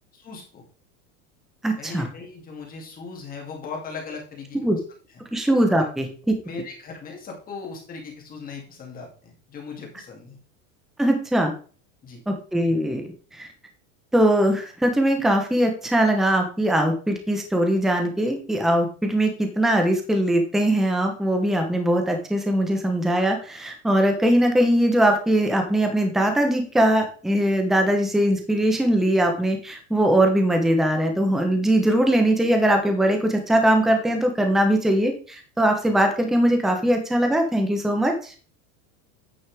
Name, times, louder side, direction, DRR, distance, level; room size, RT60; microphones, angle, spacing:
voice 1, 0.1-0.6 1.8-4.6 6.5-10.4 12.0-12.2, left 4 dB, 20° left, 1 dB, 2.3 m, -38 dB
voice 2, 1.6-2.1 4.6-4.8 5.3-6.4 11.0-11.5 12.3-13.5 14.1-38.3, right 1 dB, ahead, 4 dB, 0.9 m, -21 dB
9.3 x 6.3 x 3.5 m, 0.40 s
supercardioid pair, 155°, 38 cm